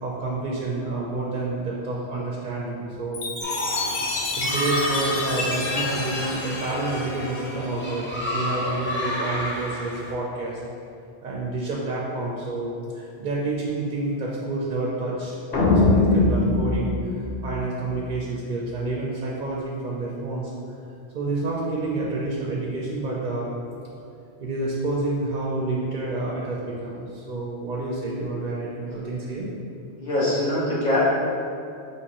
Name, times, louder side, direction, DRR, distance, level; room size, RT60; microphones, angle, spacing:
voice 1, 0.0-3.3 4.3-10.6 11.2-20.5 21.1-23.5 24.4-29.5, right 2 dB, 55° right, -4 dB, 0.6 m, -29 dB
Chime, 3.1-7.8, left 3 dB, 65° left, 0.8 m, -30 dB
sound 1, 3.4-10.1, equal, 15° left, 0.4 m, -31 dB
sound 2, 15.5-18.0, left 2 dB, 90° left, 1.0 m, -21 dB
voice 2, 30.0-31.1, left 1 dB, 45° left, -10 dB, 1.5 m, -22 dB
5.4 x 2.9 x 2.9 m, 2.5 s
omnidirectional pair, 1.1 m